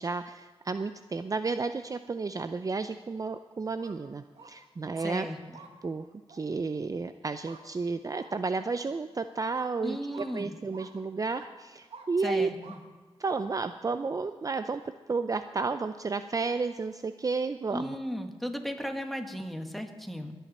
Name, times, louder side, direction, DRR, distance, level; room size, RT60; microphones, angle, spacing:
voice 1, 0.0-5.3 5.8-12.5 13.2-14.8 15.1-18.0, right 4 dB, 35° right, 10 dB, 0.5 m, -32 dB
sound 1, 3.7-4.0 4.3-4.5 4.9-5.1 5.5-5.7 6.3-6.4 7.4-7.6 8.1-8.3 8.7-8.9 9.5-9.7 10.1-10.3 10.7-10.9 11.3-11.5 11.9-12.1 12.6-12.8 13.3-13.4, right 5 dB, 75° right, 1.6 m, -48 dB
voice 2, 5.0-5.6 9.8-10.5 12.2-12.8 17.7-20.3, equal, ahead, 4 dB, 1.8 m, -36 dB
20.5 x 9.2 x 4.3 m, 1.4 s
cardioid pair, 60°, 10 cm